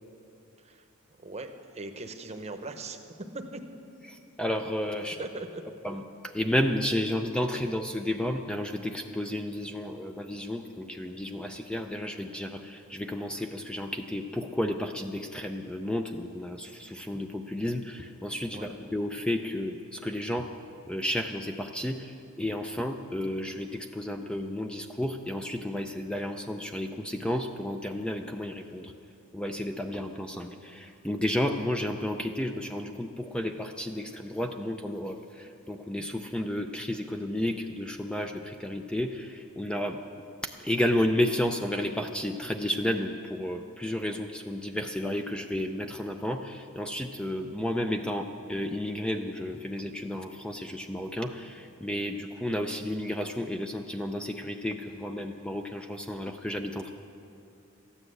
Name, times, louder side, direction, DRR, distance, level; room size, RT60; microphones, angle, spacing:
voice 1, 1.2-3.0 3.3-3.6 5.2-5.6 18.5-18.7, right 2 dB, 30° right, 6 dB, 0.9 m, -39 dB
voice 2, 4.1-5.2 5.8-20.5 20.9-28.9 29.3-40.0 40.4-56.9, left 1 dB, 5° left, 5 dB, 0.4 m, -32 dB
14.0 x 9.9 x 7.9 m, 2.7 s
head